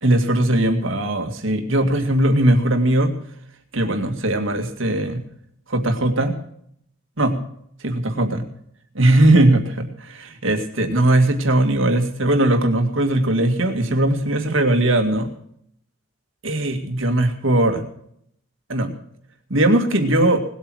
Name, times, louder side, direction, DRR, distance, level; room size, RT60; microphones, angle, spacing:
voice 1, 0.0-3.1 3.7-5.2 5.7-6.3 7.2-7.4 7.8-8.4 8.9-15.3 16.4-17.8 18.7-18.9 19.5-20.4, right 1 dB, 65° right, 5 dB, 2.1 m, -19 dB
19.5 x 8.6 x 6.2 m, 0.68 s
head